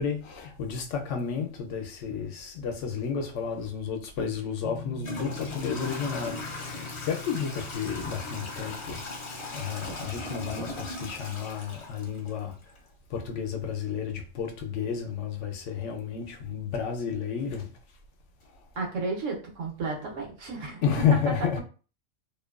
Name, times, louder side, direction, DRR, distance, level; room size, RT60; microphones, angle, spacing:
voice 1, 0.0-12.5 13.1-17.7 20.8-21.6, left 7 dB, 75° left, 0.9 m, -31 dB
Toilet flush / Trickle dribble, 4.2-4.3 5.0-12.8, left 2 dB, 45° left, 0.3 m, -38 dB
sound 1, 4.6-10.2, left 5 dB, 55° right, 0.7 m, -44 dB
voice 2, 18.8-21.3, right 3 dB, 85° right, 1.2 m, -33 dB
2.8 x 2.2 x 2.3 m
omnidirectional pair, 1.3 m